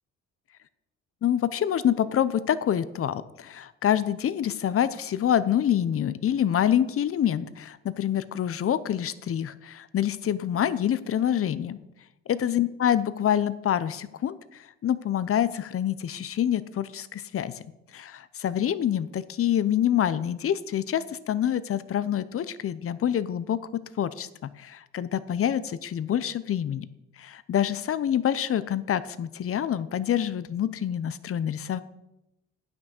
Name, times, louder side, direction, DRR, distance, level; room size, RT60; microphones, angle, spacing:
voice 1, 1.2-11.8 12.3-14.4 14.8-17.5 17.9-24.3 24.6-26.9 27.2-31.8, left 10 dB, 50° left, 16 dB, 0.7 m, -26 dB
9.6 x 6.1 x 6.5 m, 0.90 s
cardioid pair, 90°, 30 cm